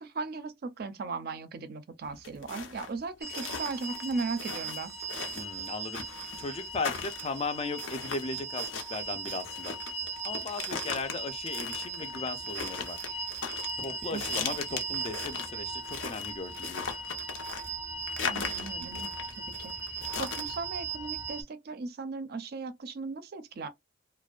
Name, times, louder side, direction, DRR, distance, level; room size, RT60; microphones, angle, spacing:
voice 1, 0.0-4.9 14.1-14.6 18.3-19.1 19.6-23.7, right 4 dB, 55° right, 0.4 m, -37 dB
sound 1, 2.0-20.6, left 5 dB, 90° left, 0.6 m, -39 dB
sound 2, 3.2-21.4, right 3 dB, 15° right, 0.6 m, -38 dB
voice 2, 5.4-9.7 10.2-13.0 13.8-16.9, left 3 dB, 35° left, 0.4 m, -37 dB
2.5 x 2.1 x 2.3 m
head